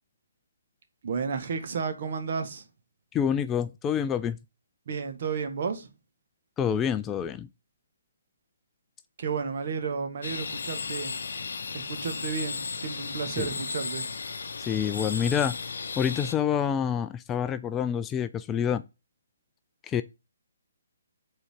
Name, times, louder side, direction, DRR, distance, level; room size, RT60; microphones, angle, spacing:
voice 1, 1.0-2.6 4.9-5.9 9.2-11.2 11.7-14.1, right 5 dB, 50° right, 1.5 m, -32 dB
voice 2, 3.1-4.4 6.6-7.5 13.4-13.5 14.7-15.5 16.0-18.8 19.9-20.0, left 8 dB, 15° left, 0.4 m, -27 dB
sound 1, 10.2-16.3, left 5 dB, 70° left, 0.7 m, -35 dB
5.5 x 4.1 x 5.0 m
hypercardioid pair, 150°, 0 cm